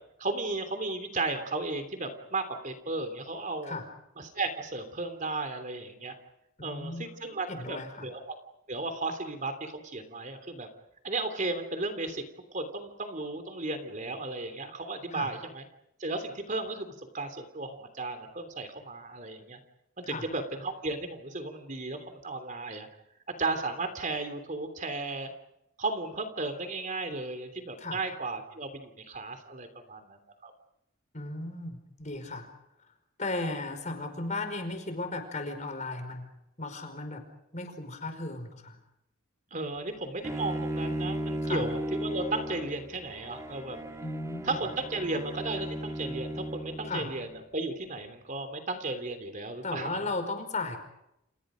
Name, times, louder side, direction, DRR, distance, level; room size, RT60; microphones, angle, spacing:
voice 1, 0.2-3.8 4.2-6.2 6.6-8.3 8.7-10.7 11.0-12.2 12.5-15.6 16.0-19.6 20.0-22.9 23.4-25.3 25.8-30.5 39.5-43.8 44.4-50.0, right 3 dB, 40° right, 8 dB, 3.1 m, -35 dB
voice 2, 6.6-7.1 7.5-8.1 15.1-15.3 20.1-20.3 27.8-28.0 31.1-32.5 33.2-36.2 36.6-37.2 37.5-38.8 41.4-41.7 44.0-44.6 46.9-47.1 49.6-50.8, left 2 dB, 35° left, 7 dB, 5.0 m, -35 dB
Bowed string instrument, 40.2-47.3, right 1 dB, 15° right, 2.3 m, -36 dB
29.5 x 29.5 x 5.1 m, 0.83 s
head